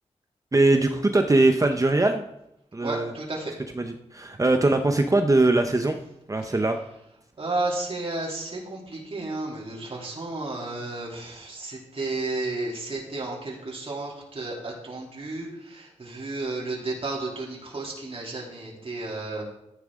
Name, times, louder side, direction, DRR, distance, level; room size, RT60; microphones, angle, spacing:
voice 1, 0.5-2.2 2.7-3.1 3.8-6.0 6.3-6.8, right 2 dB, 25° right, 6 dB, 0.8 m, -21 dB
voice 2, 2.8-3.5 6.4-6.5 7.4-19.4, right 2 dB, 50° right, -4 dB, 3.2 m, -32 dB
12.5 x 10.0 x 3.7 m, 0.82 s
wide cardioid pair, 75°, 12 cm